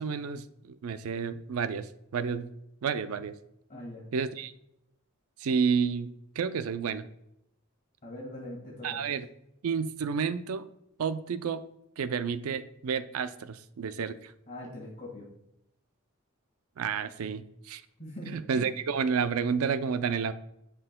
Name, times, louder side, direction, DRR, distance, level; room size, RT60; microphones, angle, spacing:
voice 1, 0.0-2.5 2.8-3.3 4.1-4.5 5.4-7.1 8.8-9.3 9.6-10.7 11.0-11.6 12.0-14.3 16.8-17.8 18.3-20.3, right 6 dB, 80° right, 12 dB, 0.4 m, -30 dB
voice 2, 3.7-4.1 8.0-9.0 14.5-15.3 18.0-18.7, left 1 dB, 35° left, -4 dB, 1.6 m, -42 dB
11.0 x 4.5 x 2.2 m, 0.81 s
head